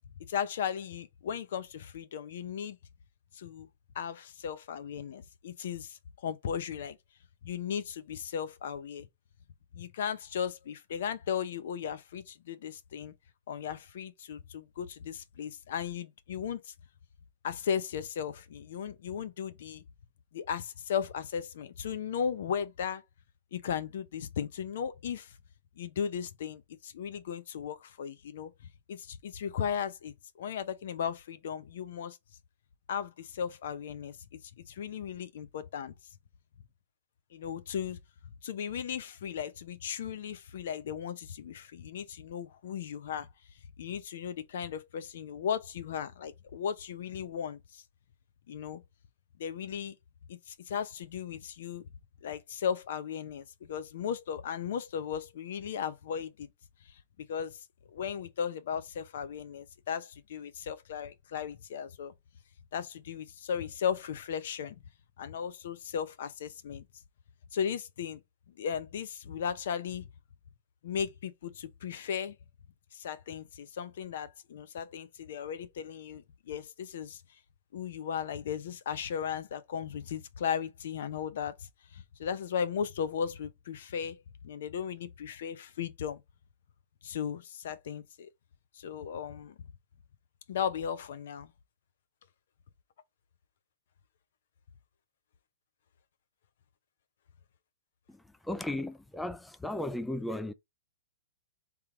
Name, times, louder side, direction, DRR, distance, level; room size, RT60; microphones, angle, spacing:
voice 1, 0.3-2.8 3.3-3.7 3.9-7.0 7.4-9.1 9.7-13.1 13.5-16.7 17.4-19.8 20.3-23.0 23.5-25.3 25.8-28.5 28.9-32.2 32.9-34.1 34.6-35.9 37.3-38.0 38.4-43.3 43.8-47.8 48.5-48.8 49.4-49.9 50.3-51.8 52.2-56.5 57.2-62.1 62.7-64.8 65.2-66.8 67.5-68.2 68.6-70.1 70.8-72.4 72.9-77.2 77.7-86.2 87.0-88.3 88.7-89.6 90.5-91.5, left 8 dB, 65° left, 0.7 m, -36 dB
voice 2, 98.1-100.5, left 1 dB, 5° left, 0.4 m, -36 dB
3.5 x 3.0 x 4.8 m
hypercardioid pair, 140°, 0 cm